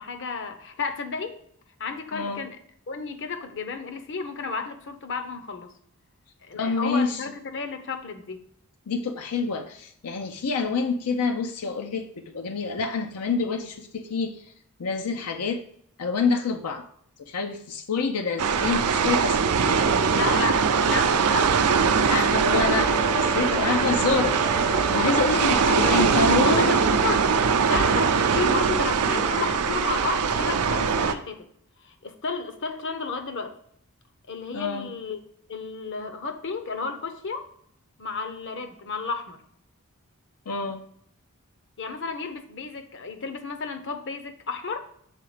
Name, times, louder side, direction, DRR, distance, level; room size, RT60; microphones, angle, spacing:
voice 1, 0.0-1.4 1.8-2.6 2.9-5.7 6.4-8.4 20.1-21.8 22.3-22.8 25.5-27.2 27.4-31.5 31.8-33.6 34.3-35.2 35.5-37.5 38.0-39.4 41.8-44.8, left 4 dB, 55° left, 7 dB, 0.8 m, -32 dB
voice 2, 6.6-7.2 8.9-14.4 14.8-15.6 16.0-16.8 17.3-19.4 22.1-24.4 24.9-26.8 34.5-34.9 40.5-40.8, left 4 dB, 80° left, 6 dB, 0.6 m, -27 dB
sound 1, 18.4-31.1, right 5 dB, 90° right, 0.5 m, -22 dB
Brass instrument, 22.3-26.2, left 1 dB, 15° left, 0.3 m, -35 dB
6.6 x 3.8 x 4.9 m, 0.67 s
head